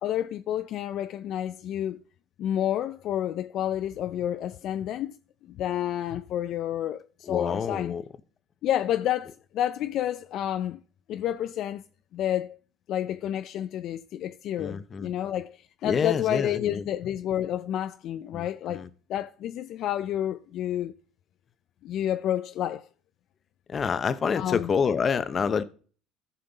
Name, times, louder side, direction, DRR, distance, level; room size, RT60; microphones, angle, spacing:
voice 1, 0.0-2.0 2.4-5.2 5.4-7.9 8.6-10.8 11.1-11.8 12.1-12.6 12.9-20.9 21.8-22.9 24.3-24.7, left 11 dB, 65° left, 0.5 m, -30 dB
voice 2, 7.3-8.0 14.6-15.1 15.8-16.8 18.3-18.9 23.7-25.6, left 6 dB, 40° left, 0.8 m, -27 dB
14.0 x 5.6 x 4.0 m
supercardioid pair, 85°, 0 cm